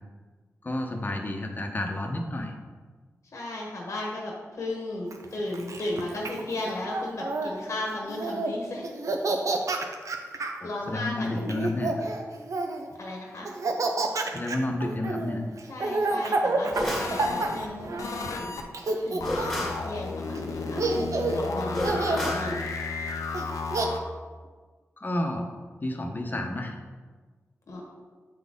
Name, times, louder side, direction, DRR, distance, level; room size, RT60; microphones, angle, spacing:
voice 1, 0.6-2.5 10.6-11.9 14.3-15.4 25.0-25.5 25.8-26.8, left 1 dB, 35° left, 3 dB, 0.9 m, -30 dB
voice 2, 3.3-8.8 10.3-11.8 13.0-13.5 15.7-22.6 27.7-27.8, left 2 dB, 70° left, -1 dB, 1.1 m, -35 dB
Laughter, 5.1-7.5 8.1-8.5 8.8-10.6 11.4-12.9 13.4-18.3 18.7-19.7 20.3-20.4 20.8-21.4 21.8-22.4 23.3-23.9, right 2 dB, 70° right, 0.6 m, -29 dB
sound 1, 16.7-17.2 19.2-19.8 21.7-22.5, equal, ahead, 1.9 m, -31 dB
sound 2, 17.0-17.7 18.0-18.6 19.2-24.0, left 4 dB, 90° left, 0.6 m, -33 dB
7.5 x 4.0 x 3.6 m, 1.4 s
cardioid pair, 50°, 6 cm